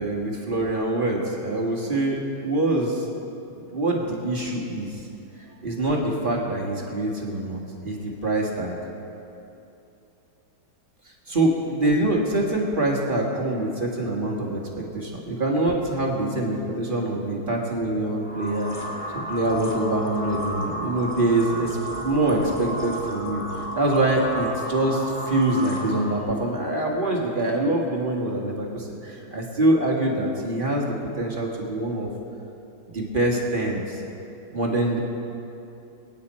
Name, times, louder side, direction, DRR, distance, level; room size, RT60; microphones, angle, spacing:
voice 1, 0.0-3.1 3.6-5.0 5.6-8.8 11.3-14.6 14.9-18.7 19.1-30.9 31.2-32.1 32.9-34.0 34.5-35.0, right 1 dB, 30° right, -2 dB, 1.7 m, -25 dB
sound 1, 18.2-26.3, equal, 5° left, 2.7 m, -33 dB
23.0 x 9.4 x 4.3 m, 2.8 s
omnidirectional pair, 1.9 m